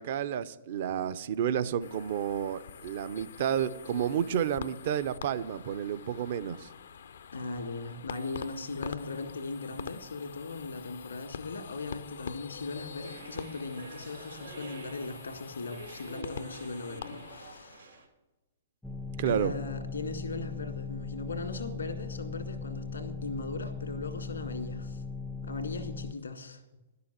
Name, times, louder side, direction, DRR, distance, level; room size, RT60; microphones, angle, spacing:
voice 1, 0.0-6.7 19.2-19.5, right 9 dB, 55° right, 0.6 m, -31 dB
sound 1, 1.8-17.8, left 7 dB, 75° left, 0.5 m, -45 dB
voice 2, 7.3-17.9 19.3-25.0 25.4-26.6, left 3 dB, 90° left, 1.9 m, -38 dB
sound 2, 13.0-18.1, right 3 dB, 85° right, 2.9 m, -47 dB
sound 3, 18.8-26.1, left 4 dB, 5° left, 0.4 m, -39 dB
11.0 x 6.9 x 9.1 m
hypercardioid pair, 120°, 0 cm